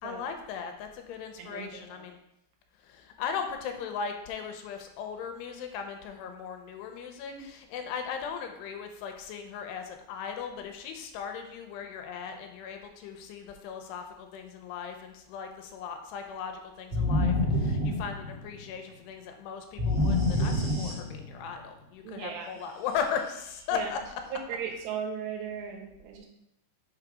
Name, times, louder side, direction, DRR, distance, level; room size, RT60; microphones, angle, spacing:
voice 1, 0.0-2.2 2.8-24.0, left 7 dB, 85° left, 5 dB, 2.7 m, -37 dB
voice 2, 1.4-2.1 7.3-7.4 22.0-22.5 23.7-23.9 24.3-26.3, right 7 dB, 80° right, 1 dB, 3.1 m, -37 dB
sound 1, 16.9-18.6 19.8-21.4, left 1 dB, 40° right, 1.5 m, -27 dB
6.4 x 3.9 x 4.8 m, 0.83 s
omnidirectional pair, 4.8 m